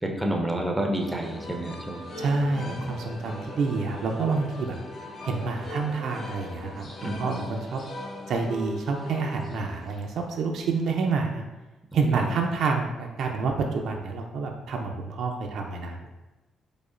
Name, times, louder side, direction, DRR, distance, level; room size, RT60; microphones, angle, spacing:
voice 1, 0.0-2.1 2.6-3.0 7.0-7.4 11.9-12.3, right 1 dB, 10° right, 1 dB, 0.5 m, -30 dB
sound 1, 1.0-10.2, left 1 dB, 50° left, 0.7 m, -40 dB
voice 2, 2.2-4.8 5.2-7.8 8.3-11.4 11.9-16.0, right 4 dB, 70° right, 2 dB, 0.4 m, -28 dB
4.9 x 2.1 x 2.5 m, 1.1 s
cardioid pair, 90°, 0 cm